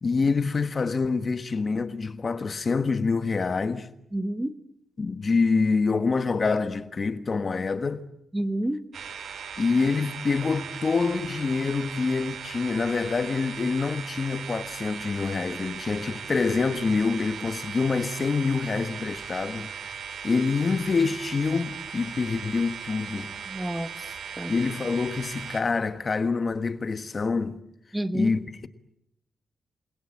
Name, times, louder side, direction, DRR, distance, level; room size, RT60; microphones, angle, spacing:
voice 1, 0.0-3.9 5.0-8.0 9.6-19.7 20.2-23.3 24.5-27.6 28.1-28.7, left 4 dB, 40° left, 1.4 m, -26 dB
voice 2, 4.1-4.5 8.3-8.8 23.5-24.5 27.9-28.3, right 1 dB, 10° right, 1.5 m, -29 dB
sound 1, 8.9-25.6, right 7 dB, 70° right, 2.5 m, -38 dB
29.0 x 22.0 x 8.6 m
cardioid pair, 110°, 0 cm